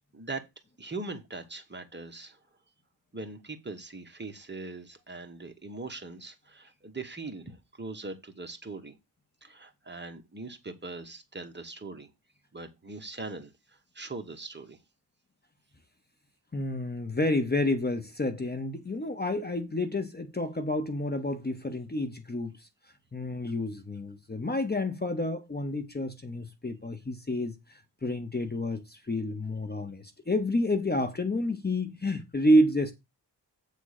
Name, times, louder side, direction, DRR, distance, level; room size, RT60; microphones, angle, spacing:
voice 1, 0.1-0.5 0.8-2.4 3.1-9.0 9.4-12.1 12.5-14.8, right 3 dB, 25° right, 1.2 m, -41 dB
voice 2, 16.5-22.7 23.1-32.9, left 1 dB, 25° left, 0.9 m, -29 dB
8.3 x 3.7 x 6.5 m
wide cardioid pair, 140°, 42 cm